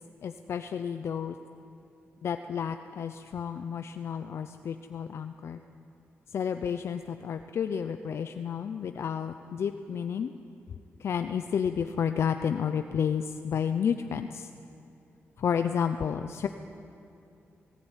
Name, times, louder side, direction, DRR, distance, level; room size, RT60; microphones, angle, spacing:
voice 1, 0.2-1.4 2.2-5.6 6.3-10.3 11.0-14.5 15.4-16.5, left 7 dB, 65° left, 8 dB, 0.7 m, -31 dB
19.0 x 17.0 x 9.1 m, 2.8 s
cardioid pair, 105°, 5 cm